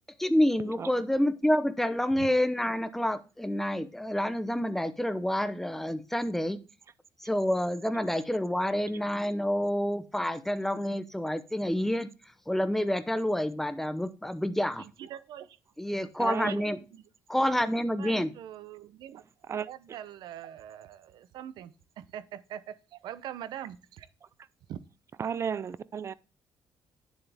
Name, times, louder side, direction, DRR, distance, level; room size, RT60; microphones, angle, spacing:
voice 1, 0.2-6.6 7.2-12.1 12.5-14.8 15.8-16.8 17.3-18.3, left 1 dB, 5° left, 0.7 m, -28 dB
voice 2, 14.8-15.5 16.2-17.0 18.0-19.2 19.7-24.1 24.7-24.8, right 10 dB, 80° right, 0.7 m, -43 dB
voice 3, 16.2-16.5 19.5-20.0 25.2-26.1, right 7 dB, 35° right, 0.4 m, -34 dB
9.3 x 7.1 x 3.5 m
cardioid pair, 135°, 8 cm